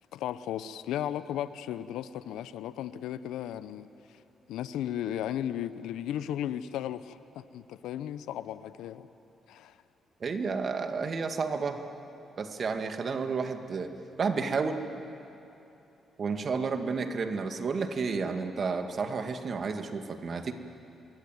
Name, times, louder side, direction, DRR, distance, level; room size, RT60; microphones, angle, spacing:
voice 1, 0.1-4.2 4.5-9.1 9.5-9.8, left 11 dB, 80° left, 14 dB, 0.7 m, -35 dB
voice 2, 10.2-11.8 12.4-13.9 14.2-14.8 16.2-20.5, right 4 dB, 55° right, 6 dB, 2.1 m, -31 dB
26.0 x 21.0 x 9.3 m, 3.0 s
supercardioid pair, 50°, 0 cm